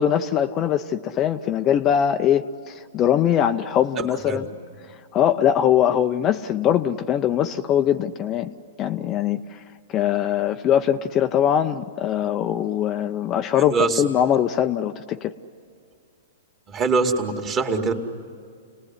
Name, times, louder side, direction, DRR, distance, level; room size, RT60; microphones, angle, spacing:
voice 1, 0.0-4.4 5.1-8.5 8.8-9.6 9.9-15.3, left 9 dB, 25° left, 7 dB, 0.7 m, -22 dB
voice 2, 13.6-14.0 16.7-17.9, right 4 dB, 25° right, 3 dB, 2.4 m, -23 dB
29.5 x 19.5 x 9.7 m, 2.3 s
hypercardioid pair, 145°, 0 cm